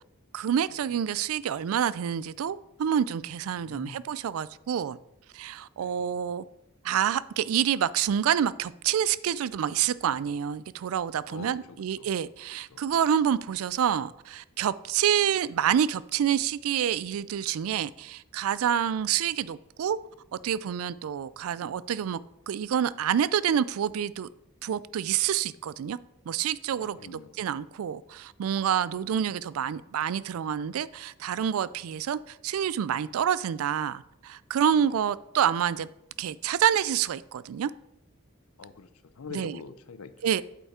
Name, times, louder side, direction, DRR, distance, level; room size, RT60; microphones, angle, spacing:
voice 1, 0.3-5.0 5.3-6.4 6.8-20.0 20.4-22.2 22.5-24.3 24.6-26.0 26.3-35.9 36.2-37.7 39.3-39.6 40.2-40.4, right 9 dB, 80° right, 0.3 m, -27 dB
voice 2, 3.5-4.1 5.8-6.2 11.3-12.1 12.7-12.9 26.8-27.5 28.9-29.1 34.8-34.9 38.6-40.3, left 5 dB, 90° left, 0.6 m, -45 dB
8.2 x 5.7 x 4.2 m
head